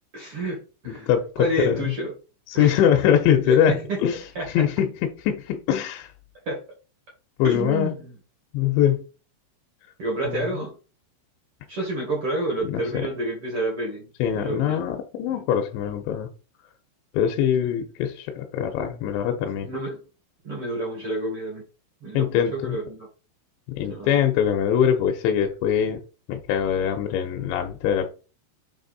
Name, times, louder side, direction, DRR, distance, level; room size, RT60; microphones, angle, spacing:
voice 1, 0.1-1.1 1.4-2.1 2.5-2.7 3.4-4.0 4.3-4.5 6.4-6.6 7.4-8.2 10.0-10.7 11.7-14.8 15.3-15.4 19.6-20.0 20.4-21.6 22.0-23.1 23.8-24.3, right 1 dB, 70° right, 1.3 m, -29 dB
voice 2, 0.9-1.9 2.5-4.2 4.5-4.9 5.2-6.1 7.4-7.9 8.5-9.0 10.3-10.6 12.6-13.0 14.2-16.3 17.1-19.7 22.1-22.8 23.7-26.0 26.3-28.1, left 9 dB, 80° left, 2.9 m, -23 dB
8.8 x 3.6 x 4.1 m
omnidirectional pair, 5.7 m